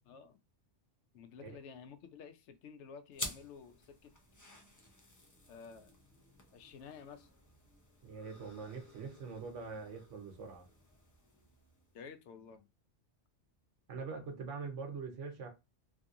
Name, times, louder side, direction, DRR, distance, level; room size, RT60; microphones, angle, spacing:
voice 1, 0.1-0.4 1.1-4.1 5.5-6.0 6.5-7.3 11.9-12.7, left 6 dB, 80° left, 0.9 m, -52 dB
sound 1, 3.1-12.1, left 2 dB, 30° left, 0.3 m, -51 dB
voice 2, 8.0-10.7 13.9-15.5, right 5 dB, 85° right, 1.2 m, -43 dB
3.0 x 2.7 x 2.4 m
omnidirectional pair, 1.2 m